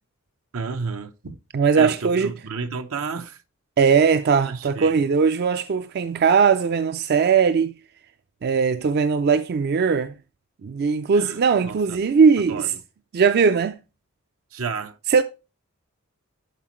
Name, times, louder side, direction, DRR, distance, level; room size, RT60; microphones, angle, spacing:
voice 1, 0.5-1.4 1.7-3.4 4.4-5.1 11.1-12.1 12.5-12.7 14.5-15.0, right 5 dB, 85° right, 0.8 m, -32 dB
voice 2, 1.5-2.3 3.8-7.7 8.4-10.1 10.6-12.6 13.1-13.8 15.1-15.2, right 5 dB, 50° right, 0.4 m, -19 dB
11.0 x 4.3 x 3.1 m
head